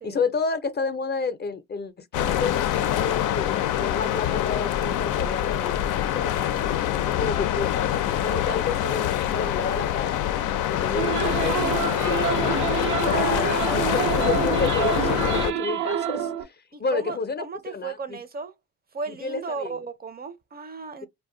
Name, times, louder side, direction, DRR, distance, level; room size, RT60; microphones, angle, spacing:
voice 1, 0.0-10.2 10.7-12.4 13.0-18.2 19.1-19.8, left 4 dB, 35° left, 0.5 m, -30 dB
sound 1, 2.1-15.5, left 11 dB, 90° left, 0.4 m, -25 dB
sound 2, 11.0-16.4, right 9 dB, 85° right, 0.6 m, -27 dB
voice 2, 13.0-13.4 16.7-18.5 18.9-21.1, right 4 dB, 30° right, 0.5 m, -35 dB
2.5 x 2.1 x 3.7 m
cardioid pair, 90°, 30 cm